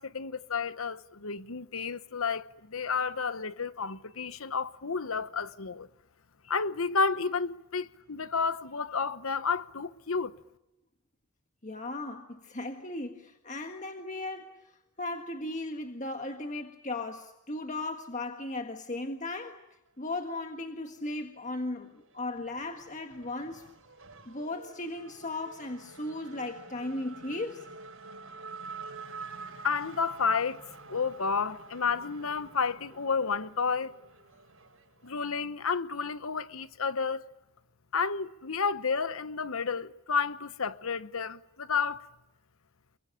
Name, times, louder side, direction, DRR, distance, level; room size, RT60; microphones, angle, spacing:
voice 1, 0.0-5.9 6.5-10.3 29.6-30.6 30.9-33.9 35.0-37.2 37.9-42.0, left 5 dB, 75° left, 1.0 m, -31 dB
voice 2, 11.6-19.6 20.0-23.6 24.3-27.7, left 2 dB, 35° left, 1.7 m, -37 dB
Race car auto racing / Accelerating revving vroom, 20.2-21.2 21.6-35.2, right 4 dB, 65° right, 6.8 m, -48 dB
28.5 x 23.0 x 8.9 m
head